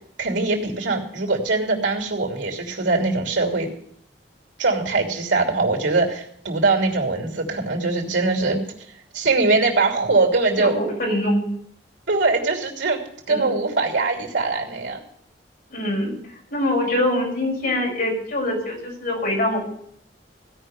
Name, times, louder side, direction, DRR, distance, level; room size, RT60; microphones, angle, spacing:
voice 1, 0.2-3.7 4.6-8.6 9.1-10.7 12.1-13.0 13.3-15.0, right 3 dB, 90° right, 3 dB, 3.0 m, -22 dB
voice 2, 10.6-11.5 13.3-13.6 15.7-16.1 16.5-19.7, left 1 dB, 55° left, -2 dB, 5.8 m, -24 dB
16.5 x 5.6 x 9.4 m, 0.68 s
head